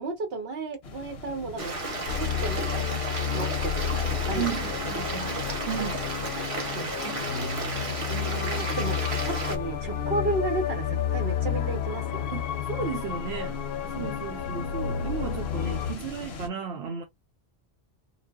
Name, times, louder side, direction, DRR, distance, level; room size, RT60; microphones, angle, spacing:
voice 1, 0.0-1.7 2.1-2.9 3.3-4.6 6.7-6.9 8.1-12.3 14.0-14.2, right 2 dB, 70° right, 1.2 m, -33 dB
sound 1, 0.8-16.5, left 3 dB, 90° left, 1.0 m, -44 dB
Stream, 1.6-9.6, right 2 dB, 35° right, 0.8 m, -33 dB
sound 2, 2.1-16.0, left 9 dB, 70° left, 0.7 m, -31 dB
voice 2, 4.3-5.4 5.7-6.1 7.0-7.2 12.3-13.6 13.8-17.0, right 7 dB, 85° right, 0.9 m, -34 dB
2.9 x 2.0 x 2.2 m
omnidirectional pair, 1.0 m